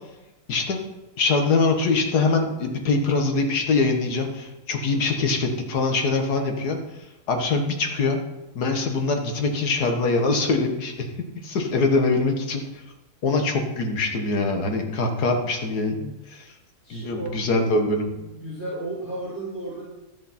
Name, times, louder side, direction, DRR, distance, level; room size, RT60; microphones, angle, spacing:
voice 1, 1.2-6.8 7.3-8.2 8.6-11.1 11.4-12.8 13.2-16.5 16.9-18.1, left 3 dB, 90° left, 4 dB, 1.9 m, -23 dB
voice 2, 16.8-17.4 18.1-19.8, right 2 dB, 65° left, -12 dB, 5.2 m, -34 dB
14.0 x 7.3 x 4.3 m, 0.98 s
omnidirectional pair, 1.6 m